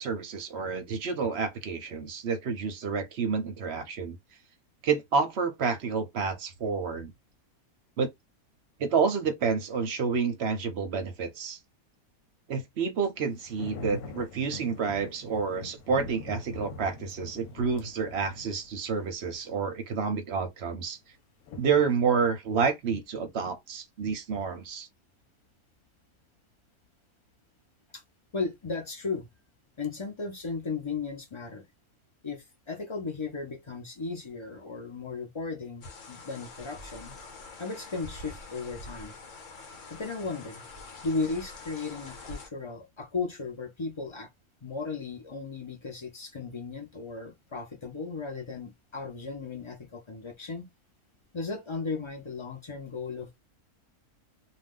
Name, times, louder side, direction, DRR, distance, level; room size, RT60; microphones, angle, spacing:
voice 1, 0.0-4.2 4.8-7.1 8.0-8.1 8.8-11.6 12.5-21.0 21.6-24.9, right 5 dB, 55° right, 0.8 m, -29 dB
sound 1, 13.3-19.3 21.5-22.1, left 2 dB, 85° left, 1.1 m, -43 dB
voice 2, 28.3-29.3 29.8-31.7 32.2-37.1 37.6-39.2 39.9-40.6 41.0-44.3 44.6-50.7 51.3-53.4, left 4 dB, 35° left, 0.5 m, -35 dB
sound 2, 35.8-42.5, left 3 dB, 60° left, 1.1 m, -45 dB
2.5 x 2.3 x 3.5 m
omnidirectional pair, 1.6 m